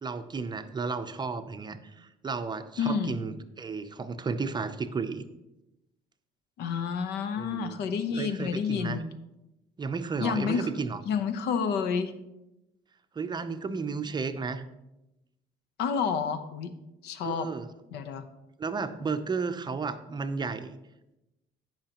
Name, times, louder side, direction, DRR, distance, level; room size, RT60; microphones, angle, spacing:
voice 1, 0.0-5.3 7.3-7.8 8.1-9.0 9.8-11.0 13.1-14.6 17.2-17.7 18.6-20.8, right 4 dB, 25° right, 9 dB, 0.6 m, -33 dB
voice 2, 2.8-3.2 6.6-9.0 10.2-10.7 11.1-12.1 15.8-16.7 17.0-17.5 17.9-18.3, left 6 dB, 80° left, 11 dB, 0.8 m, -29 dB
15.5 x 5.7 x 2.9 m, 0.94 s
cardioid pair, 110°, 17 cm